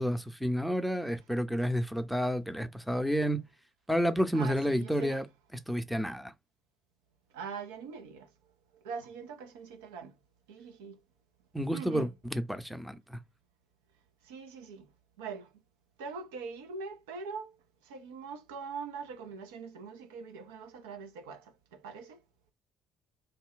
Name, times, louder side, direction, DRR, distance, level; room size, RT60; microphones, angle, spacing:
voice 1, 0.0-3.4 3.9-5.3 5.7-6.3 11.5-13.2, equal, ahead, 0.7 m, -30 dB
voice 2, 4.3-5.2 7.3-8.3 8.8-10.1 10.5-11.0 11.7-12.1 14.3-14.9 15.2-15.5 16.0-17.5 17.9-21.4 21.7-22.2, right 5 dB, 80° right, 0.6 m, -42 dB
3.3 x 2.2 x 3.7 m
hypercardioid pair, 50°, 0 cm